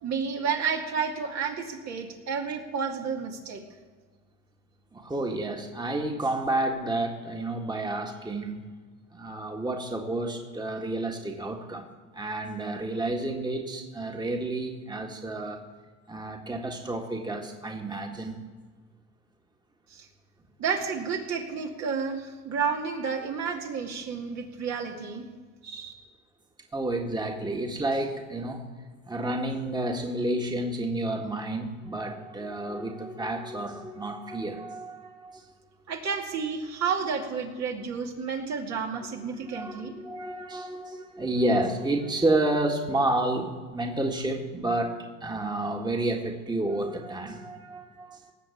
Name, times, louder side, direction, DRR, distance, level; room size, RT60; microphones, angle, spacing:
voice 1, 0.0-3.6 19.9-20.1 20.6-25.2 25.6-25.9 35.9-40.0, right 6 dB, 60° right, 1 dB, 2.3 m, -31 dB
voice 2, 4.9-8.6 9.1-11.9 12.1-15.6 16.1-18.4 26.7-28.7 29.1-35.5 39.4-48.3, right 2 dB, 15° right, 2 dB, 1.8 m, -30 dB
18.0 x 7.2 x 7.2 m, 1.5 s
supercardioid pair, 90°, 32 cm